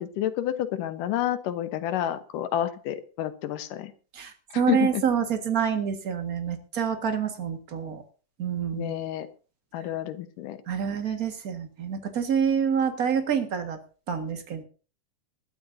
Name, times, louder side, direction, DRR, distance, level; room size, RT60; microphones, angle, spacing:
voice 1, 0.0-3.9 4.5-5.0 8.7-9.3 9.7-10.6, left 12 dB, 85° left, 11 dB, 2.7 m, -29 dB
voice 2, 4.5-8.0 8.4-8.9 10.7-13.8 14.1-14.6, right 7 dB, 35° right, 6 dB, 1.5 m, -27 dB
21.5 x 12.5 x 2.7 m, 0.36 s
omnidirectional pair, 3.7 m